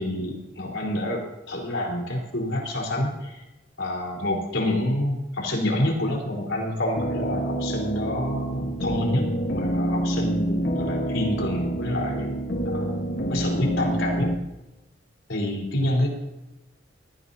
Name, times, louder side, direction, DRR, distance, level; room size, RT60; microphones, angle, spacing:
voice 1, 0.0-3.4 3.8-12.3 12.6-12.9 13.3-14.3 15.3-16.1, left 1 dB, 90° left, -1 dB, 4.3 m, -27 dB
sound 1, 7.0-14.3, right 1 dB, 55° left, 1.4 m, -27 dB
19.0 x 15.0 x 2.8 m, 0.98 s
head